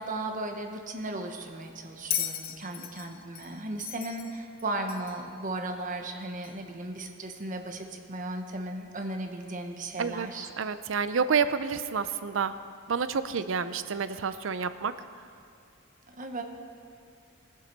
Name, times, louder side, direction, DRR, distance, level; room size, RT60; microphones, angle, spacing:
voice 1, 0.0-10.5 16.1-16.4, right 2 dB, 40° right, 5 dB, 1.0 m, -36 dB
Bell, 2.1-5.3 6.4-6.5, left 10 dB, 45° left, 0.7 m, -36 dB
voice 2, 10.6-12.5 12.9-14.9, right 6 dB, 65° right, 12 dB, 0.5 m, -29 dB
18.5 x 7.6 x 5.4 m, 2.5 s
head